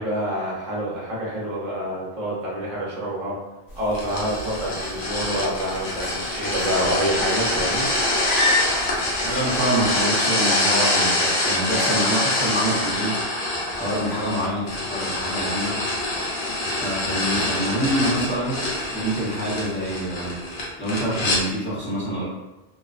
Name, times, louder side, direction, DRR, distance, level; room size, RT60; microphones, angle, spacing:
voice 1, 0.0-3.4 3.7-7.8, equal, 45° right, -6 dB, 0.7 m, -27 dB
sound 1, 3.7-10.0, left 2 dB, 80° left, 1.0 m, -31 dB
sound 2, 3.9-21.4, left 1 dB, 55° left, 0.7 m, -25 dB
voice 2, 9.2-13.2 13.7-15.8 16.8-20.4 20.8-22.2, right 1 dB, 10° left, -12 dB, 0.7 m, -26 dB
2.4 x 2.2 x 2.4 m, 1.1 s
omnidirectional pair, 1.2 m